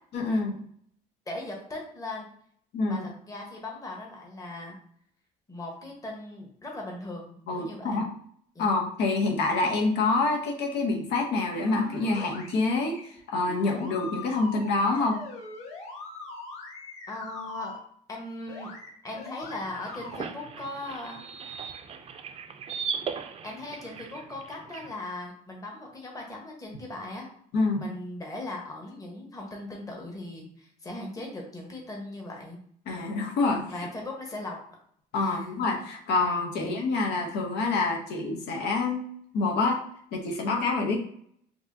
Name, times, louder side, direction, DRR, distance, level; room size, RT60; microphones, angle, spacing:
voice 1, 0.1-0.6 2.7-3.1 7.5-8.1 8.6-15.2 27.5-27.9 32.9-33.9 35.1-39.1 39.3-39.8 40.1-41.0, left 3 dB, 80° left, 1 dB, 0.9 m, -27 dB
voice 2, 1.3-2.3 2.8-4.8 5.5-8.0 8.5-8.7 17.1-17.7 18.1-18.7 19.0-21.3 23.4-27.3 27.7-32.6 33.7-34.6 35.2-35.4 36.6-36.8, left 2 dB, 20° left, 0 dB, 1.2 m, -39 dB
sound 1, 11.5-13.0 13.5-17.8 18.5-18.9 19.1-20.2, left 3 dB, 40° left, 1.5 m, -42 dB
sound 2, 19.4-24.9, right 6 dB, 35° right, 0.4 m, -38 dB
4.6 x 2.8 x 2.7 m, 0.63 s
cardioid pair, 110°, 17 cm